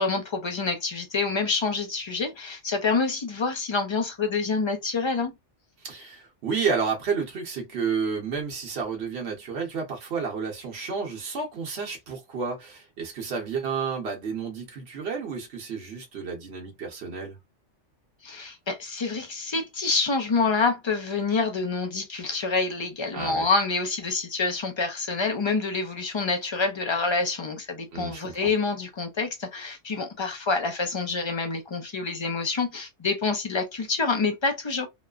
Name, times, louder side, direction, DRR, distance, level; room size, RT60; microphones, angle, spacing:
voice 1, 0.0-5.3 18.2-34.9, left 4 dB, 40° left, 0.4 m, -27 dB
voice 2, 5.8-17.4 23.1-23.5 27.9-28.5, right 5 dB, 65° right, 1.1 m, -31 dB
3.0 x 2.1 x 2.3 m
omnidirectional pair, 1.2 m